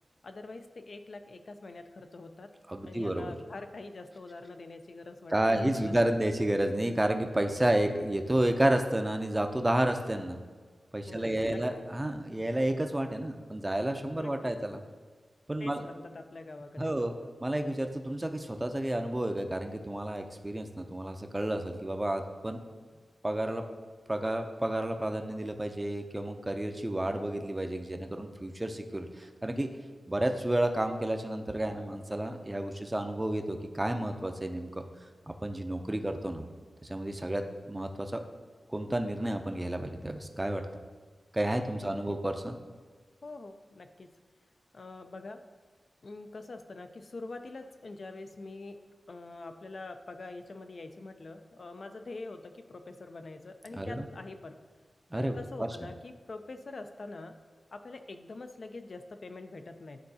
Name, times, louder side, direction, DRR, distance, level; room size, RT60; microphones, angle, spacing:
voice 1, 0.2-2.5 2.8-6.0 11.1-11.6 14.1-14.6 15.6-17.1 41.8-42.2 43.2-44.1 44.7-45.4 46.0-48.8 49.1-54.6 55.1-57.4 57.7-60.0, left 3 dB, 55° left, 7 dB, 0.5 m, -45 dB
voice 2, 2.7-3.3 5.3-10.4 10.9-14.8 15.5-15.9 16.8-17.1 17.4-22.6 23.2-23.6 24.1-29.7 30.1-34.7 35.3-36.5 36.8-38.2 38.7-40.6 41.3-42.6 53.7-54.0 55.1-55.7, right 1 dB, 20° right, 6 dB, 0.5 m, -31 dB
11.0 x 3.8 x 2.7 m, 1.5 s
wide cardioid pair, 85°, 0 cm